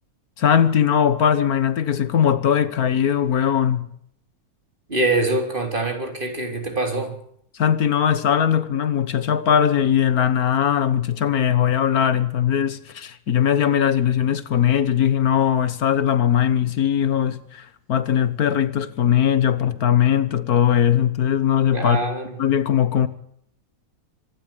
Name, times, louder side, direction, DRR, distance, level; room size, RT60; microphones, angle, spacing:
voice 1, 0.4-3.9 7.6-22.0 22.4-23.1, left 9 dB, 80° left, 1.7 m, -20 dB
voice 2, 4.9-7.1 21.7-22.4, right 2 dB, 35° right, 4.1 m, -24 dB
25.0 x 12.5 x 9.3 m
omnidirectional pair, 1.5 m